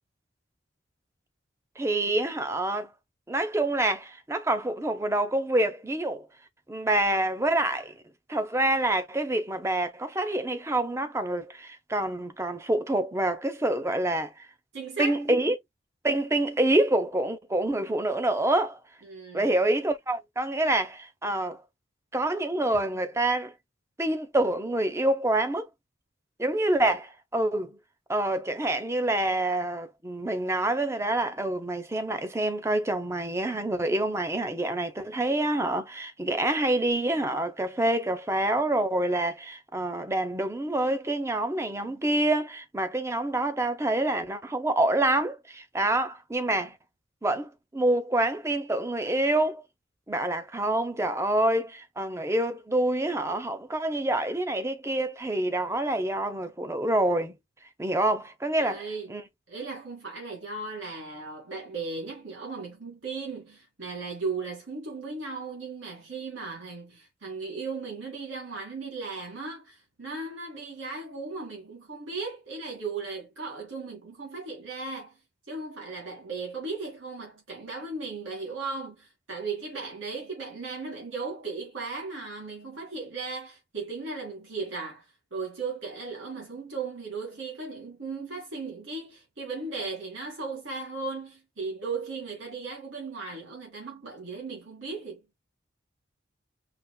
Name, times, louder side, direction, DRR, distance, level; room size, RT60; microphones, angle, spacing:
voice 1, 1.8-2.9 3.3-6.3 6.7-7.9 8.3-14.5 15.0-15.6 16.0-18.8 19.3-21.6 22.1-23.5 24.0-25.7 26.4-27.8 28.1-46.8 47.2-49.6 50.1-57.4 57.8-59.2, right 1 dB, 15° right, 0.6 m, -27 dB
voice 2, 14.7-15.4 19.1-19.6 58.6-59.1 59.5-75.1 75.5-95.4, right 4 dB, 80° right, 2.3 m, -36 dB
5.8 x 3.0 x 2.2 m
head